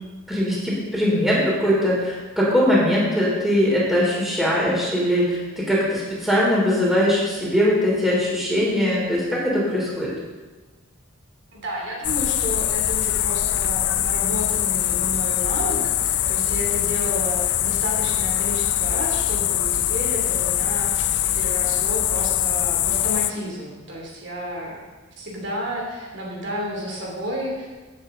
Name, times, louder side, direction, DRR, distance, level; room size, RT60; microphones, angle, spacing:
voice 1, 0.3-10.1, equal, ahead, -6 dB, 3.6 m, -21 dB
voice 2, 11.5-24.8 25.2-27.7, equal, 60° right, -2 dB, 3.0 m, -31 dB
sound 1, 12.0-23.3, left 12 dB, 55° left, 0.5 m, -23 dB
17.5 x 8.3 x 3.9 m, 1.3 s
head